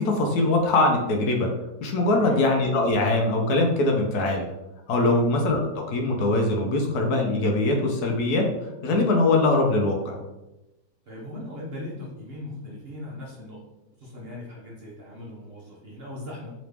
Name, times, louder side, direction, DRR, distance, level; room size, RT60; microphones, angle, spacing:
voice 1, 0.0-1.5 1.8-4.4 4.9-8.4 8.8-10.2, left 2 dB, 70° left, 1 dB, 1.2 m, -22 dB
voice 2, 11.1-13.6 14.0-16.5, left 1 dB, 45° right, -5 dB, 0.9 m, -39 dB
3.9 x 3.0 x 3.3 m, 0.97 s
omnidirectional pair, 1.8 m